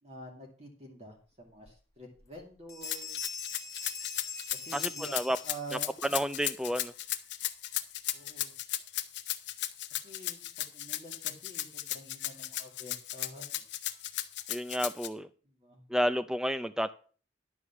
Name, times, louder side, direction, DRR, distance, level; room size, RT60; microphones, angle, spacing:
voice 1, 0.0-3.1 4.5-5.2 5.4-5.9 8.1-8.5 10.0-13.6 15.4-15.8, right 1 dB, 35° right, 2.5 m, -48 dB
sound 1, 1.7-1.8 2.2-2.4 2.7-5.8, left 5 dB, 15° left, 1.5 m, -42 dB
Rattle (instrument), 2.8-15.1, left 14 dB, 65° left, 0.8 m, -35 dB
voice 2, 4.7-5.4 6.0-6.9 14.5-15.3 15.9-16.9, equal, 5° right, 0.4 m, -30 dB
11.0 x 4.8 x 7.1 m
head